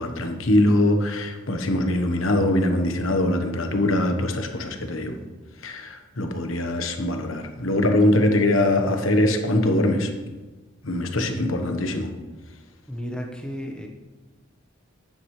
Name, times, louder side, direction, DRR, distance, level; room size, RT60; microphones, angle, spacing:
voice 1, 0.0-5.2 5.6-10.1 10.8-12.1, left 1 dB, 75° left, 5 dB, 1.2 m, -22 dB
voice 2, 12.9-13.9, equal, 5° left, 0 dB, 1.1 m, -33 dB
11.0 x 9.2 x 3.3 m, 1.2 s
head